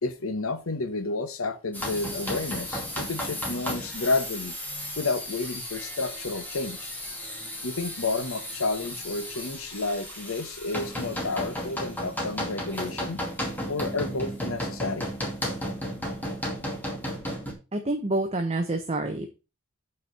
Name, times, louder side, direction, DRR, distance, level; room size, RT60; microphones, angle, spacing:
voice 1, 0.0-4.6 5.0-6.9 7.6-13.2 13.7-15.1, left 3 dB, 75° left, 1.1 m, -31 dB
sound 1, 1.7-17.5, equal, 10° left, 2.4 m, -34 dB
voice 2, 17.7-19.3, right 2 dB, 30° right, 1.0 m, -27 dB
8.7 x 4.6 x 6.6 m
head